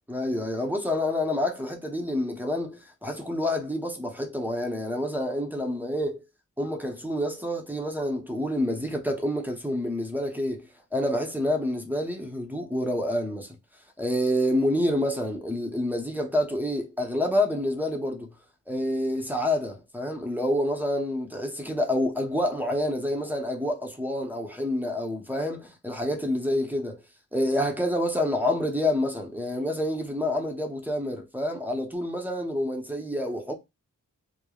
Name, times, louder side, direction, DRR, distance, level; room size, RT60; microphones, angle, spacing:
voice 1, 0.1-6.2 6.6-10.7 10.9-13.6 14.0-18.3 18.7-27.0 27.3-33.5, left 1 dB, 5° right, 0.7 m, -28 dB
3.1 x 2.1 x 2.3 m
wide cardioid pair, 50°, 34 cm